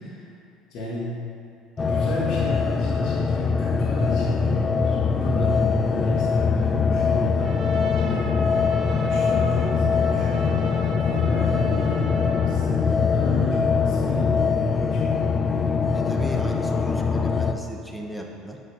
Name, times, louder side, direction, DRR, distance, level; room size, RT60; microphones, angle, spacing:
voice 1, 0.7-1.1 1.9-15.7, left 1 dB, 65° left, -6 dB, 1.2 m, -33 dB
sound 1, 1.8-17.5, left 5 dB, 25° left, 0.4 m, -22 dB
Trumpet, 7.4-12.7, right 3 dB, 55° right, 0.8 m, -40 dB
voice 2, 15.9-18.6, equal, 5° left, 1 dB, 0.8 m, -37 dB
8.2 x 6.1 x 2.7 m, 2.5 s
supercardioid pair, 100°, 0 cm